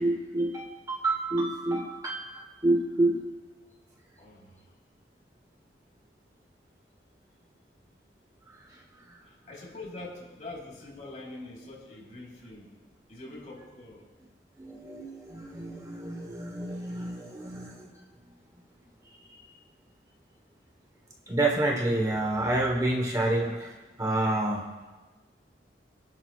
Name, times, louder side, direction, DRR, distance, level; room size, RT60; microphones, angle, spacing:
voice 1, 0.0-3.2 8.6-8.8 9.1-9.2 13.2-13.3 14.6-17.9 21.3-24.6, right 2 dB, 20° right, 1 dB, 1.1 m, -29 dB
voice 2, 4.2-4.7 9.2-12.7 13.1-14.1, left 2 dB, 45° left, -3 dB, 4.1 m, -44 dB
27.5 x 11.0 x 2.4 m, 1.3 s
head